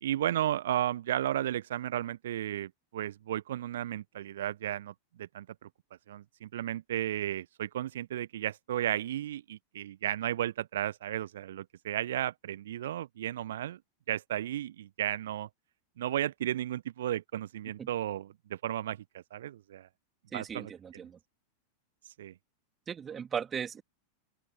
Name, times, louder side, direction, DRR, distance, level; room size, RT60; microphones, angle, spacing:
voice 1, 0.0-4.9 5.2-5.4 6.1-13.8 14.1-15.5 16.0-19.9 20.3-20.7 22.1-22.3, right 12 dB, 60° right, 1.2 m, -34 dB
voice 2, 20.3-21.2 22.9-23.8, right 7 dB, 20° right, 2.9 m, -37 dB
open air
figure-of-eight pair, 90°, 0 cm